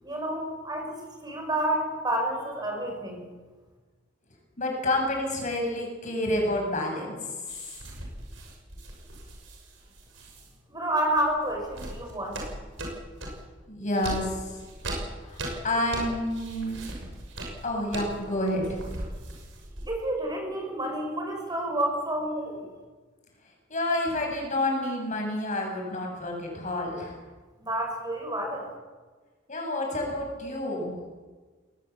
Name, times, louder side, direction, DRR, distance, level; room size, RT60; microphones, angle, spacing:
voice 1, 0.0-0.9 1.2-3.2 10.7-12.4 19.9-22.7 27.6-28.7, right 1 dB, 20° right, 2 dB, 5.5 m, -29 dB
voice 2, 4.6-7.2 13.7-14.6 15.3-16.8 17.6-18.8 23.7-27.2 29.5-30.9, left 1 dB, 40° left, 1 dB, 7.3 m, -29 dB
sound 1, 7.5-10.5 11.1-13.5 13.9-20.1, right 1 dB, 80° right, 6.6 m, -39 dB
20.5 x 19.5 x 8.7 m, 1.4 s
head